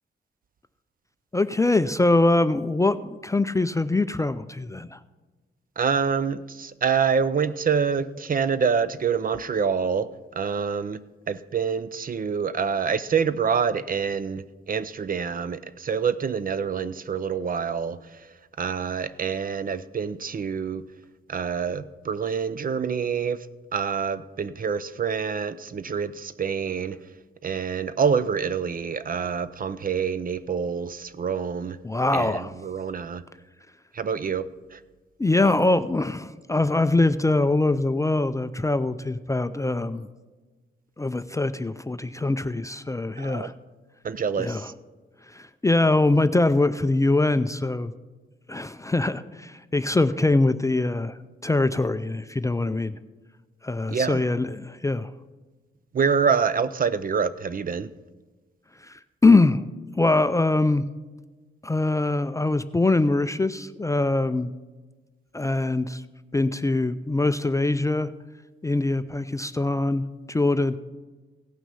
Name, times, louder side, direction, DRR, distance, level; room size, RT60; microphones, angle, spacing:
voice 1, 1.3-5.0 31.8-32.5 35.2-40.1 41.0-43.5 44.4-44.7 45.3-47.9 48.5-51.2 51.4-53.0 53.6-55.1 58.8-59.7 60.0-60.9 61.6-64.5 65.3-66.0 66.3-68.1 68.6-70.8, left 2 dB, 15° left, 12 dB, 0.4 m, -23 dB
voice 2, 5.8-10.1 10.4-11.0 11.3-18.0 18.6-20.8 21.3-23.5 23.7-27.0 27.4-31.8 32.1-33.2 33.9-34.8 43.2-43.5 44.0-44.7 53.9-54.3 55.9-57.9, right 6 dB, 40° right, 15 dB, 0.5 m, -26 dB
16.5 x 6.0 x 5.6 m, 1.3 s
cardioid pair, 95°, 21 cm